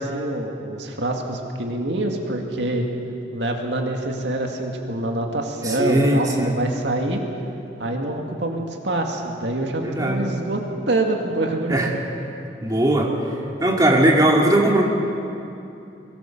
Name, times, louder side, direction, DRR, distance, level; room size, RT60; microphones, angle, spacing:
voice 1, 0.0-2.8 3.3-7.2 7.8-10.6 10.9-11.8, right 1 dB, 75° right, 2 dB, 2.1 m, -25 dB
voice 2, 5.6-6.5 9.8-10.3 11.7-11.9 12.6-13.1 13.6-14.8, right 1 dB, 20° right, -1 dB, 2.3 m, -19 dB
22.5 x 18.0 x 7.2 m, 2.8 s
head